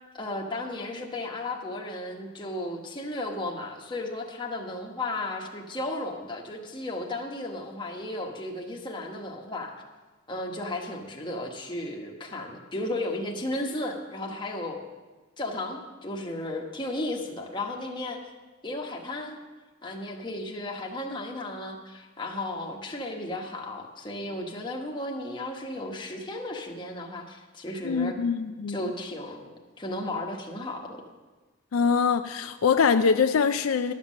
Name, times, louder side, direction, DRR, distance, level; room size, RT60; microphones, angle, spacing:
voice 1, 0.1-9.8 10.3-14.8 15.4-18.2 18.6-19.4 19.8-28.2 28.7-31.0, left 1 dB, 20° left, 0 dB, 1.2 m, -34 dB
voice 2, 27.8-28.8 31.7-33.9, left 5 dB, 70° left, 9 dB, 0.4 m, -23 dB
12.0 x 7.3 x 6.3 m, 1.3 s
head